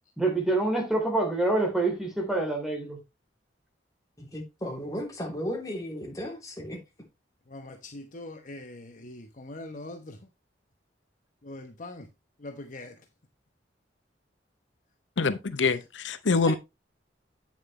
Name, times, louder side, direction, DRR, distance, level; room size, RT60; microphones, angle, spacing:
voice 1, 0.2-3.0, right 2 dB, ahead, 3.5 m, -26 dB
voice 2, 4.2-6.8 16.4-16.6, equal, 20° left, 3.3 m, -35 dB
voice 3, 7.5-10.2 11.4-12.1 12.4-12.9, left 2 dB, 45° left, 1.0 m, -42 dB
voice 4, 15.2-16.5, left 4 dB, 85° left, 0.7 m, -25 dB
9.0 x 7.4 x 3.3 m
head